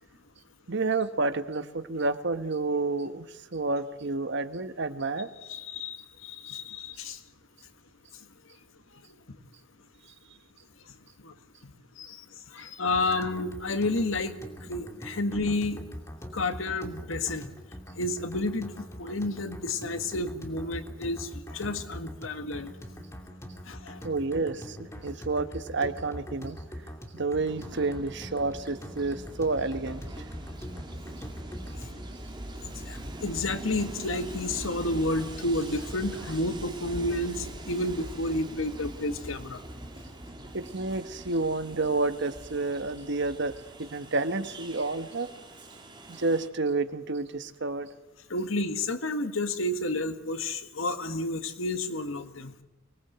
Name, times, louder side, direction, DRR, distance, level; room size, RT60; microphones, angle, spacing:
voice 1, 0.7-3.3 3.5-5.3 24.0-26.6 27.1-30.0 40.5-45.3 46.1-47.9, right 3 dB, 65° right, 11 dB, 1.3 m, -30 dB
voice 2, 5.5-6.0 6.2-7.2 11.2-11.3 12.0-12.2 12.5-14.4 14.7-15.9 16.3-17.5 18.0-22.7 23.7-24.0 32.6-39.6 48.3-52.6, left 2 dB, 80° left, 9 dB, 1.8 m, -31 dB
sound 1, 12.9-32.1, equal, 15° left, 2.6 m, -43 dB
Train, 27.5-46.5, right 1 dB, 25° right, 2.5 m, -42 dB
24.5 x 19.5 x 8.1 m, 0.99 s
head